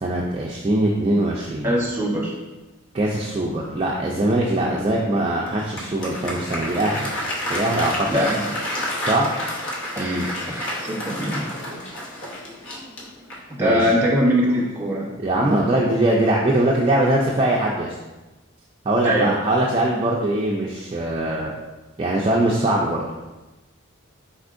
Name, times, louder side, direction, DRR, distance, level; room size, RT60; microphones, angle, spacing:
voice 1, 0.0-1.7 2.9-7.1 7.5-8.2 9.0-9.3 10.0-10.3 13.6-13.8 15.2-17.9 18.9-21.5 22.0-23.0, right 1 dB, 25° right, -3 dB, 0.3 m, -22 dB
voice 2, 1.6-2.3 4.6-4.8 8.1-8.4 10.0-11.5 13.3-15.1 19.0-19.3, equal, 10° right, -5 dB, 1.0 m, -22 dB
Applause, 5.5-13.6, left 1 dB, 65° left, 1.0 m, -30 dB
4.4 x 4.2 x 2.5 m, 1.1 s
head